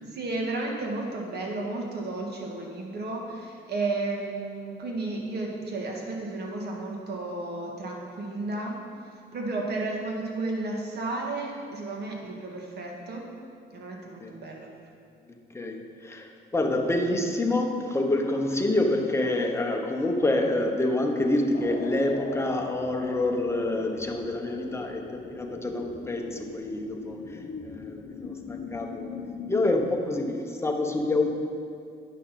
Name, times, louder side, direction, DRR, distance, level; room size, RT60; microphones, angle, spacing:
voice 1, 0.0-8.8 9.3-13.2 13.7-14.7, right 2 dB, 55° right, 0 dB, 1.7 m, -33 dB
voice 2, 15.5-25.0 25.3-29.2 29.5-31.3, left 2 dB, 15° left, 2 dB, 1.0 m, -27 dB
sound 1, 21.5-29.9, left 5 dB, 55° left, 0.7 m, -40 dB
10.0 x 5.7 x 4.2 m, 2.4 s
cardioid pair, 90°, 20 cm